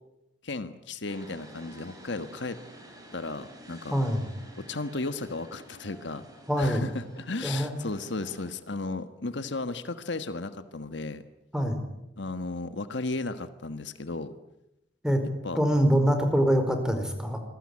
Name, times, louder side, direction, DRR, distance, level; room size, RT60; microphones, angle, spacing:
voice 1, 0.4-2.6 3.1-4.0 4.6-6.2 6.6-11.2 12.2-14.3 15.4-15.6, left 3 dB, 65° left, 11 dB, 1.5 m, -34 dB
sound 1, 1.0-8.5, equal, 20° right, 7.6 m, -50 dB
voice 2, 3.9-4.2 6.5-6.8 7.4-7.7 11.5-11.8 15.0-15.2 15.5-17.4, equal, 5° right, 7 dB, 4.8 m, -24 dB
26.5 x 21.5 x 9.8 m, 0.89 s
head